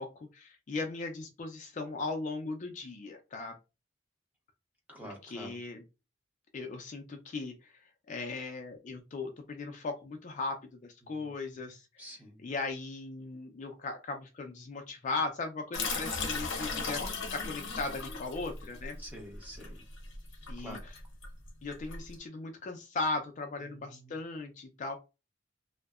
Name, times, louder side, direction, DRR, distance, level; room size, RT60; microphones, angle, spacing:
voice 1, 0.0-3.6 5.3-5.8 6.5-7.7 8.1-10.6 10.8-11.9 12.4-17.0 17.3-19.0 20.5-20.8 21.6-25.0, left 3 dB, 40° left, 5 dB, 0.3 m, -37 dB
voice 2, 4.9-5.6 11.0-11.6 12.0-12.5 19.0-19.8 20.3-20.8 23.7-24.2, equal, 10° right, 0 dB, 0.7 m, -48 dB
sound 1, 15.7-22.1, left 4 dB, 75° left, 0.8 m, -37 dB
2.6 x 2.1 x 2.3 m, 0.28 s
head